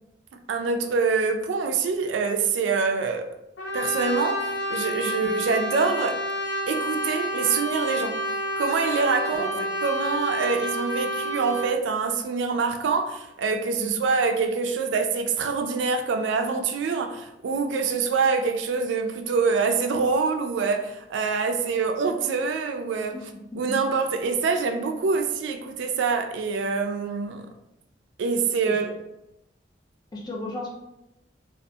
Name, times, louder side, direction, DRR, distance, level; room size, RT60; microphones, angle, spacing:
voice 1, 0.5-3.3 3.7-6.2 6.7-8.1 8.6-9.5 9.8-23.2 23.6-27.5 28.2-28.9, right 4 dB, 80° right, 6 dB, 0.3 m, -25 dB
Brass instrument, 3.6-11.7, equal, 85° left, 0.6 m, -29 dB
voice 2, 30.1-30.7, left 2 dB, 20° left, -1 dB, 0.4 m, -34 dB
2.7 x 2.4 x 2.2 m, 0.88 s
head